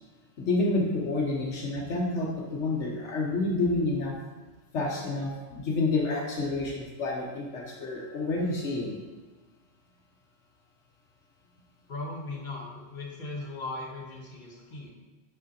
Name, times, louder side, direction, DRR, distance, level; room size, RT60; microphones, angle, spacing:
voice 1, 0.4-4.1 4.7-9.0, left 2 dB, 80° left, -1 dB, 1.3 m, -29 dB
voice 2, 11.9-14.9, left 2 dB, 40° left, -2 dB, 1.4 m, -38 dB
6.4 x 4.9 x 4.1 m, 1.3 s
omnidirectional pair, 1.2 m